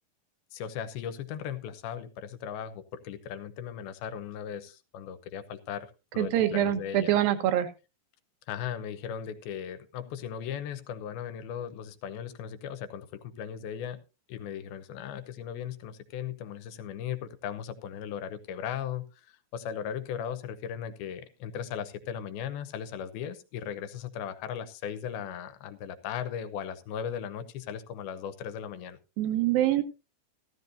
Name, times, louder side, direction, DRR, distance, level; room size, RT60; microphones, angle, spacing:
voice 1, 0.5-7.1 8.5-14.0 14.3-29.0, left 8 dB, 90° left, 11 dB, 2.8 m, -37 dB
voice 2, 6.2-7.7 29.2-29.8, right 12 dB, 80° right, 9 dB, 2.9 m, -25 dB
15.0 x 13.0 x 2.6 m, 0.29 s
omnidirectional pair, 4.2 m